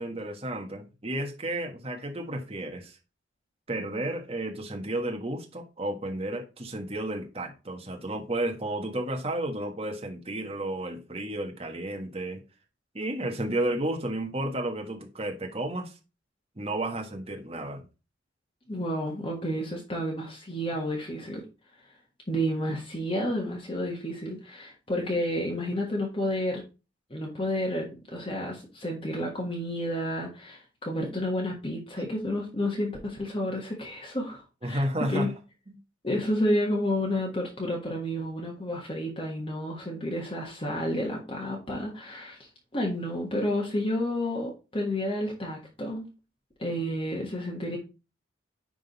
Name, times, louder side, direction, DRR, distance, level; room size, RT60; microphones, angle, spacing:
voice 1, 0.0-3.0 3.7-12.4 12.9-16.0 16.6-17.8 34.6-35.3 35.7-35.8, right 1 dB, 30° right, 1.4 m, -32 dB
voice 2, 18.7-21.5 22.3-26.6 27.1-35.3 36.0-46.1 46.6-47.8, equal, 25° left, 1.5 m, -30 dB
10.0 x 3.7 x 4.0 m
head